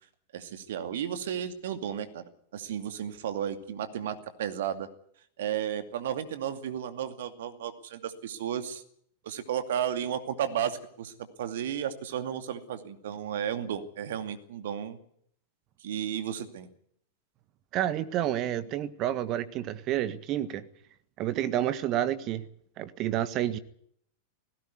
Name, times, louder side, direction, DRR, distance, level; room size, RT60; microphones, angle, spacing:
voice 1, 0.3-2.2 2.5-4.9 5.4-8.8 9.2-15.0 15.8-16.7, right 9 dB, 60° right, 9 dB, 2.4 m, -33 dB
voice 2, 17.7-20.6 21.2-22.5 22.8-23.6, right 12 dB, 35° right, 15 dB, 1.5 m, -29 dB
19.0 x 17.5 x 9.5 m, 0.66 s
figure-of-eight pair, 90°, 0 cm